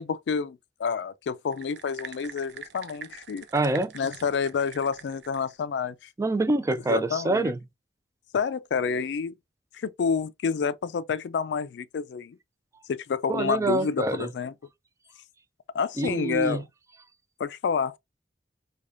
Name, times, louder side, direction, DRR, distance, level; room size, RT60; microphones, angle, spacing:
voice 1, 0.0-3.5 3.9-6.1 6.9-7.5 8.3-9.3 9.7-12.4 12.9-14.5 15.7-16.6 17.4-18.0, left 6 dB, 70° left, 0.3 m, -29 dB
sound 1, 1.5-5.5, right 7 dB, 70° right, 0.5 m, -44 dB
voice 2, 3.5-3.9 6.2-7.6 13.3-14.3 16.0-16.6, right 2 dB, 15° right, 0.3 m, -25 dB
4.8 x 2.2 x 2.5 m
head